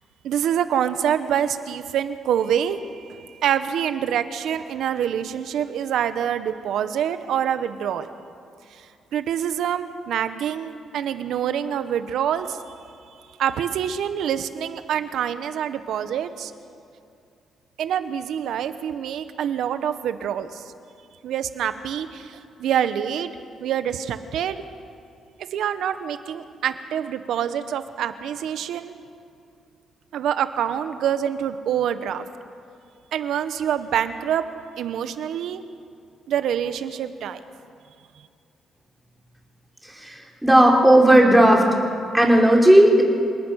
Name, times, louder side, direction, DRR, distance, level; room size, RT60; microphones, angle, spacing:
voice 1, 0.2-8.1 9.1-12.6 13.4-16.5 17.8-20.6 21.2-23.3 23.6-24.6 25.5-28.9 30.1-32.2 33.1-34.5 34.8-35.6 36.3-37.4, right 9 dB, 80° right, 10 dB, 1.3 m, -26 dB
voice 2, 40.4-41.6 42.1-43.0, right 1 dB, 5° right, -1 dB, 4.6 m, -14 dB
27.5 x 19.0 x 6.6 m, 2.4 s
cardioid pair, 90°, 0 cm